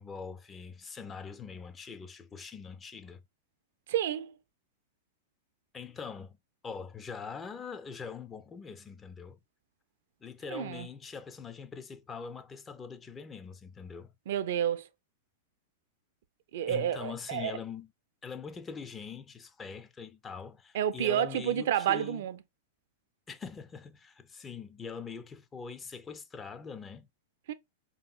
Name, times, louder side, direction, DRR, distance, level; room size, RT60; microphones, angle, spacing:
voice 1, 0.0-3.2 5.7-6.4 6.6-9.4 10.2-14.1 16.7-17.9 18.2-22.2 23.3-27.1, left 6 dB, 20° left, 0.4 m, -43 dB
voice 2, 3.9-4.3 10.5-10.9 14.3-14.9 16.5-17.5 20.7-22.4 27.5-27.6, right 10 dB, 55° right, 0.3 m, -30 dB
5.0 x 2.7 x 2.2 m
figure-of-eight pair, 95°, 0 cm